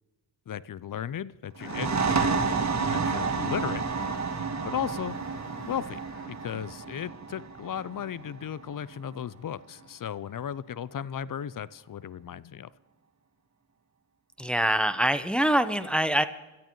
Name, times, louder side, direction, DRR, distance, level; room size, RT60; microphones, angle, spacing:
voice 1, 0.5-2.5 2.8-3.8 4.6-5.2 5.7-6.0 6.3-12.7, left 9 dB, 40° left, 19 dB, 0.6 m, -35 dB
sound 1, 1.6-6.5, left 3 dB, 85° left, 3.9 m, -46 dB
sound 2, 1.6-9.0, right 5 dB, 35° right, 1.6 m, -30 dB
voice 2, 14.4-16.2, equal, ahead, 10 dB, 1.0 m, -24 dB
26.0 x 13.5 x 3.2 m, 1.2 s
supercardioid pair, 45°, 49 cm